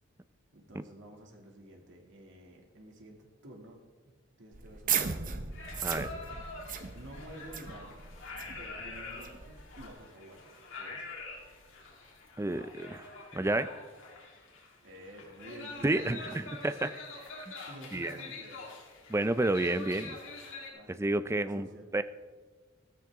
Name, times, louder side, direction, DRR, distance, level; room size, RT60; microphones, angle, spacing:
voice 1, 0.5-3.2 3.4-5.3 6.9-8.0 8.6-11.1 14.8-16.5 17.7-18.6 20.7-21.9, right 1 dB, 65° right, 1 dB, 2.4 m, -51 dB
sound 1, 4.5-9.9, right 7 dB, 45° right, 0.9 m, -37 dB
sound 2, 5.5-20.7, left 3 dB, 70° left, 3.3 m, -46 dB
voice 2, 12.4-13.1 13.3-13.7 15.8-16.9 17.5-17.6 17.9-18.2 19.1-20.2 20.9-21.7 21.9-22.0, right 2 dB, 15° right, 13 dB, 0.5 m, -30 dB
14.5 x 13.5 x 3.6 m, 1.3 s
head